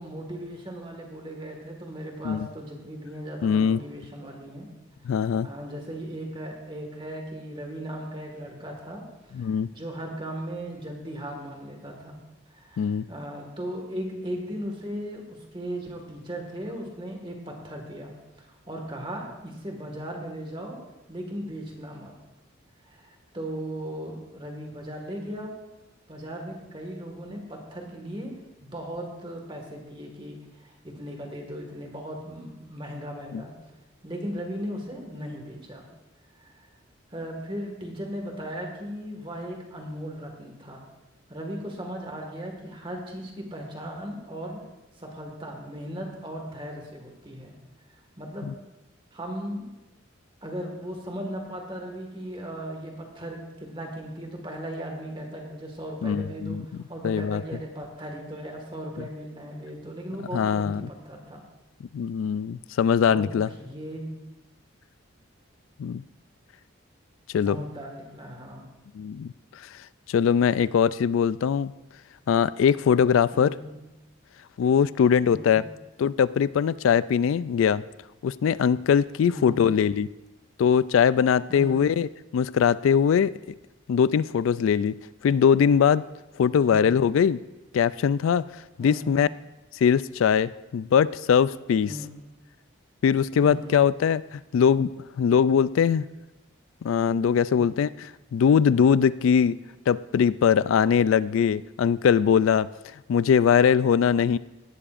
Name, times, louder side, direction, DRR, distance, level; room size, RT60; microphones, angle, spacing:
voice 1, 0.0-4.7 5.4-9.0 9.3-12.2 12.5-20.8 21.1-22.1 22.8-25.5 26.1-28.3 28.6-33.5 34.0-35.8 36.4-36.7 37.1-40.8 41.3-44.6 45.0-47.5 48.2-48.5 49.1-49.7 50.4-61.4 63.1-64.1 67.4-68.7 73.3-73.7 75.3-75.6 79.3-79.7 81.5-81.8 86.6-86.9 88.8-89.2 91.8-92.1 93.4-93.8 97.5-97.7, equal, 25° right, 2 dB, 1.7 m, -37 dB
voice 2, 3.4-3.8 5.1-5.5 9.4-9.7 12.8-13.1 33.3-33.4 48.5-48.6 56.0-56.6 57.0-57.4 60.3-60.9 61.9-63.5 65.8-66.0 67.3-67.6 68.9-69.3 70.1-71.7 72.3-73.5 74.6-75.6 76.0-77.8 78.2-80.1 80.6-83.3 83.9-85.0 85.2-86.0 86.4-87.4 87.7-88.4 88.8-89.3 89.8-91.9 93.0-94.9 95.2-96.1 96.8-99.5 99.9-102.7 103.1-104.4, left 7 dB, 75° left, 17 dB, 0.3 m, -21 dB
17.0 x 12.0 x 2.5 m, 1.0 s
head